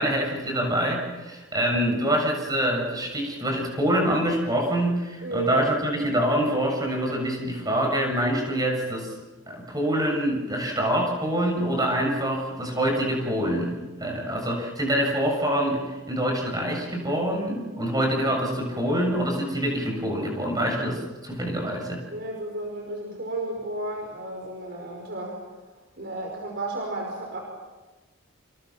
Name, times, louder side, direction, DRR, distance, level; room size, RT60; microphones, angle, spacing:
voice 1, 0.0-9.1 9.5-22.0, right 1 dB, 20° right, 1 dB, 7.1 m, -25 dB
voice 2, 5.2-5.6 22.1-25.4 26.0-27.4, right 2 dB, 55° right, 0 dB, 5.4 m, -33 dB
29.0 x 28.0 x 6.0 m, 1.2 s
head